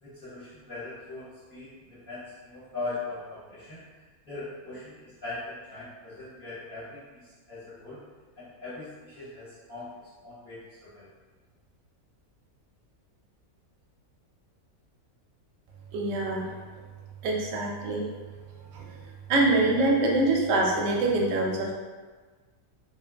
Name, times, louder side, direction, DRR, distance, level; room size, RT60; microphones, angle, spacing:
voice 1, 0.0-3.8 4.2-8.0 8.4-9.9 10.2-10.6 10.9-11.1, left 3 dB, 45° left, -13 dB, 1.0 m, -40 dB
voice 2, 15.9-16.5 17.2-18.1 18.7-18.9 19.3-21.7, right 2 dB, 70° right, -1 dB, 0.8 m, -24 dB
2.9 x 2.5 x 2.3 m, 1.4 s
omnidirectional pair, 1.5 m